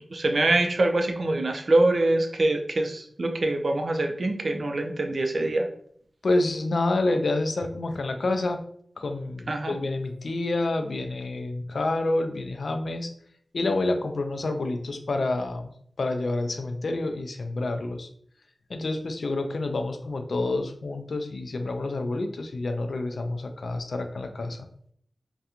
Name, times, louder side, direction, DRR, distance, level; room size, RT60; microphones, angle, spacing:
voice 1, 0.1-5.7 9.5-9.7, right 2 dB, 70° right, 4 dB, 0.4 m, -24 dB
voice 2, 6.2-8.6 9.0-13.1 13.5-15.7 16.0-18.1 18.7-24.7, left 2 dB, 80° left, 6 dB, 0.3 m, -28 dB
2.4 x 2.2 x 2.8 m, 0.63 s
wide cardioid pair, 55°, 0 cm